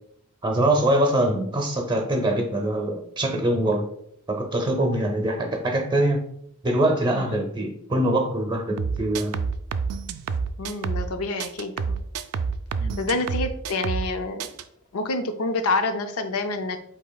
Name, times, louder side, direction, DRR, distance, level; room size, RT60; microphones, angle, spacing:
voice 1, 0.4-3.9 4.3-6.2 6.6-9.4 12.8-13.0, right 1 dB, 20° right, 4 dB, 0.7 m, -23 dB
sound 1, 8.8-11.1 11.4-14.1 14.4-14.6, right 5 dB, 85° right, 0.4 m, -28 dB
voice 2, 10.6-12.0 13.0-14.5 14.9-16.8, left 2 dB, 75° left, 7 dB, 0.5 m, -27 dB
8.1 x 2.9 x 2.3 m, 0.71 s
head